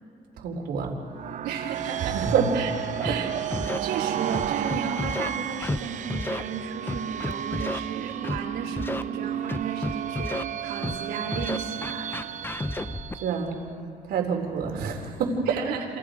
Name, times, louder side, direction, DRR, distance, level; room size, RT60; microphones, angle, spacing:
voice 1, 0.4-1.0 2.1-2.5 3.0-3.2 13.1-13.6 14.1-15.5, right 6 dB, 70° right, 2 dB, 3.9 m, -27 dB
sound 1, 1.0-13.6, right 10 dB, 45° right, 0.6 m, -33 dB
voice 2, 1.4-2.2 2.5-2.7 3.0-3.3 3.8-12.4 12.7-12.9 15.5-15.9, right 6 dB, 90° right, -3 dB, 3.9 m, -34 dB
Scratching (performance technique), 3.0-3.1 3.5-3.8 4.3-5.3 5.6-5.8 6.1-6.4 6.9-7.8 8.2-8.4 8.8-9.0 9.5-10.4 10.8-11.0 11.3-13.2, left 2 dB, 15° left, 0.8 m, -31 dB
28.5 x 27.5 x 5.1 m, 2.7 s
cardioid pair, 110°, 17 cm